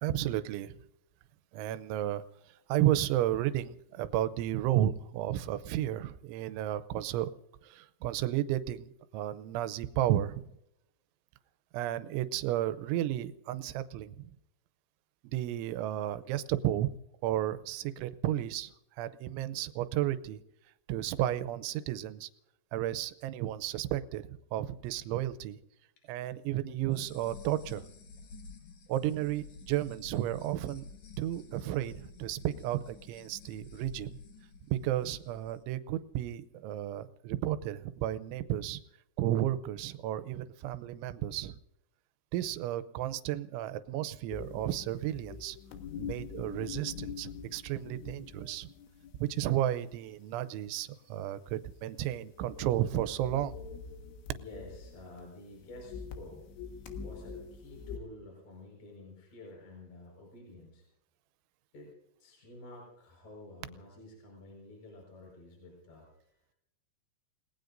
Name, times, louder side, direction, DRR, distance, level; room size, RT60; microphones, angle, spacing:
voice 1, 0.0-0.7 1.5-2.2 2.7-7.3 7.6-10.4 11.7-14.3 15.3-16.9 17.2-18.7 19.0-20.4 20.9-22.3 22.7-25.6 26.1-27.8 28.9-30.8 31.2-34.2 34.7-38.8 39.2-41.6 42.3-45.6 46.0-48.7 49.2-53.6, right 13 dB, 85° right, 12 dB, 3.1 m, -33 dB
sound 1, 26.9-35.5, left 4 dB, 55° left, 2.1 m, -51 dB
sound 2, 44.3-49.5 49.9-50.1 52.0-52.1 52.3-55.2 55.5-58.0, left 6 dB, 85° left, 3.9 m, -44 dB
voice 2, 54.3-56.5 57.0-60.8 61.7-61.9 62.2-66.6, left 2 dB, 40° left, -1 dB, 6.0 m, -50 dB
29.5 x 19.0 x 2.6 m, 0.83 s
omnidirectional pair, 5.3 m